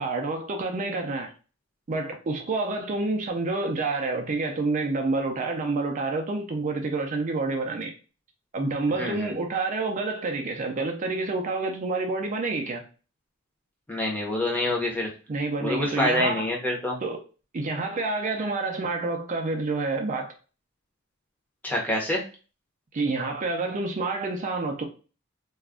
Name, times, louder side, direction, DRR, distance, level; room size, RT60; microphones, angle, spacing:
voice 1, 0.0-1.3 1.9-7.9 8.5-12.8 15.3-16.5 17.0-17.2 17.5-20.3 22.9-24.8, right 3 dB, 35° right, 0.4 m, -28 dB
voice 2, 9.0-9.3 13.9-15.1 15.6-17.0 21.6-22.2, left 1 dB, 10° left, 0.7 m, -26 dB
2.4 x 2.1 x 3.4 m
head